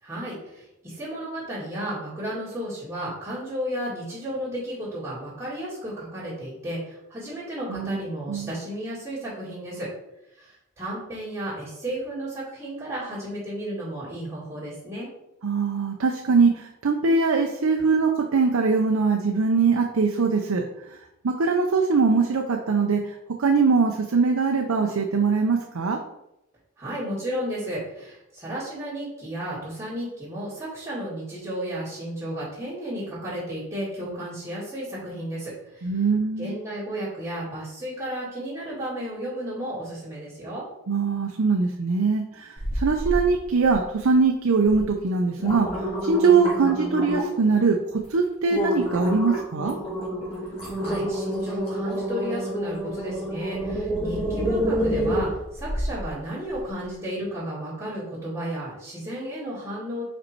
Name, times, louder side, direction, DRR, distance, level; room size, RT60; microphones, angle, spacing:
voice 1, 0.0-9.9 10.4-15.1 26.8-36.0 36.4-40.6 50.5-60.0, equal, 10° right, -12 dB, 2.3 m, -33 dB
voice 2, 15.4-20.6 20.9-21.0 21.2-23.1 23.4-26.0 35.8-36.5 40.9-45.7 46.0-49.8, right 4 dB, 85° right, 2 dB, 0.6 m, -22 dB
sound 1, 42.6-43.2 43.6-44.1 44.7-44.8 45.2-47.4 47.9-48.1 48.5-56.0 56.5-56.6, equal, 25° left, 2.1 m, -28 dB
5.2 x 4.4 x 4.4 m, 0.86 s
head